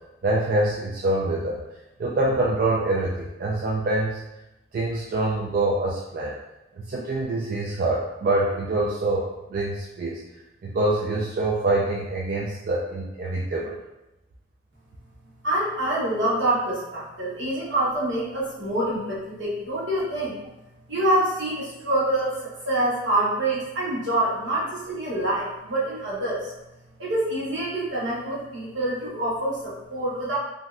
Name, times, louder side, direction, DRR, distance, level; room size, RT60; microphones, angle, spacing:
voice 1, 0.2-1.6 2.0-4.2 4.7-6.4 6.8-10.2 10.6-13.8, right 2 dB, 50° right, -4 dB, 0.3 m, -25 dB
voice 2, 15.4-20.4 20.9-26.5 27.0-30.4, right 1 dB, 80° right, -7 dB, 1.1 m, -26 dB
3.0 x 2.6 x 2.4 m, 0.94 s
head